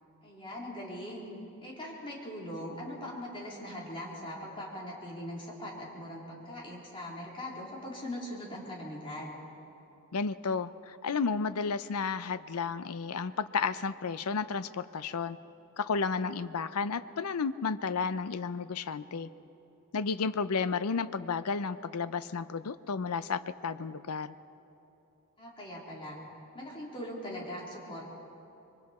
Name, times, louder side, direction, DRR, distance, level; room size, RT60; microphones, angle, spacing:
voice 1, 0.2-1.3 1.6-9.3 25.4-26.2 26.5-28.1, left 1 dB, 25° left, -4 dB, 3.5 m, -41 dB
voice 2, 10.1-15.4 15.8-19.3 19.9-24.3, left 5 dB, 80° left, 14 dB, 0.6 m, -32 dB
26.0 x 23.0 x 4.3 m, 2.9 s
head